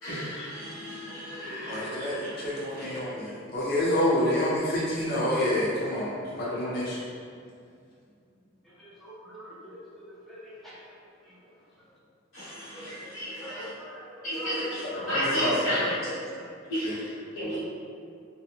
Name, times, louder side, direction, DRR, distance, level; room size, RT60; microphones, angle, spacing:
voice 1, 0.0-3.1 12.3-13.7 14.2-15.9 16.7-17.6, equal, 85° left, -10 dB, 1.1 m, -34 dB
voice 2, 1.1-1.7 8.8-10.9 11.3-11.4 12.6-15.3 15.6-16.1, right 1 dB, ahead, -8 dB, 0.4 m, -43 dB
voice 3, 1.7-7.0 14.9-15.9, left 1 dB, 50° left, -7 dB, 0.7 m, -28 dB
2.8 x 2.0 x 2.4 m, 2.3 s
head